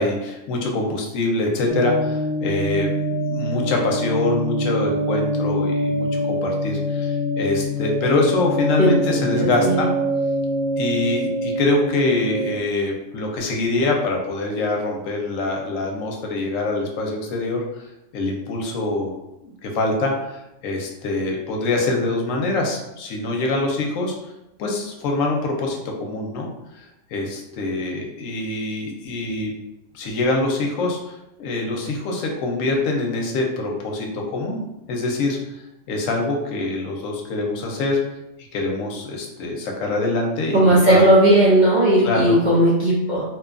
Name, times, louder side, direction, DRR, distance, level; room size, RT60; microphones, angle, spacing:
voice 1, 0.0-9.9 10.8-17.9 18.1-24.1 24.6-26.5 27.1-29.5 29.9-34.6 34.9-38.0 38.5-41.1 42.0-42.4, left 2 dB, 85° left, 1 dB, 1.0 m, -24 dB
sound 1, 1.7-12.5, equal, 35° right, 1.4 m, -24 dB
voice 2, 8.8-9.8 40.5-43.2, right 1 dB, 55° right, -7 dB, 0.5 m, -16 dB
2.8 x 2.2 x 2.4 m, 0.91 s
omnidirectional pair, 1.4 m